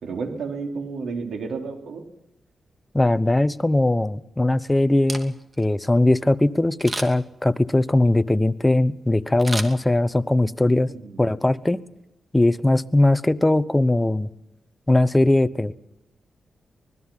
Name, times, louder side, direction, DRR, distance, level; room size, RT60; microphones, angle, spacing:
voice 1, 0.0-2.1 10.6-11.3, right 4 dB, 80° right, 4 dB, 3.8 m, -32 dB
voice 2, 2.9-10.9 11.2-11.8 12.3-14.3 14.9-15.7, left 1 dB, 15° left, 14 dB, 0.9 m, -20 dB
Camera, 4.9-5.7 6.8-7.4 9.4-10.3 10.8-10.9, right 2 dB, 30° right, 2.7 m, -33 dB
24.5 x 20.5 x 5.7 m, 0.88 s
cardioid pair, 85°, 0 cm